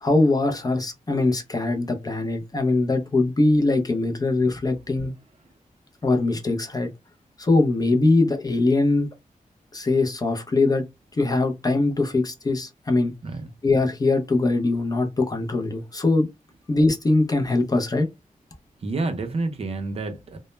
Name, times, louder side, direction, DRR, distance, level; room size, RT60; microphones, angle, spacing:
voice 1, 0.0-5.1 6.0-6.9 7.4-9.1 9.7-10.8 11.1-13.1 13.6-16.3 16.7-18.1, left 2 dB, 25° left, 0.4 m, -22 dB
voice 2, 18.8-20.4, right 3 dB, 45° right, 0.4 m, -29 dB
2.0 x 2.0 x 3.0 m
wide cardioid pair, 165°, 14 cm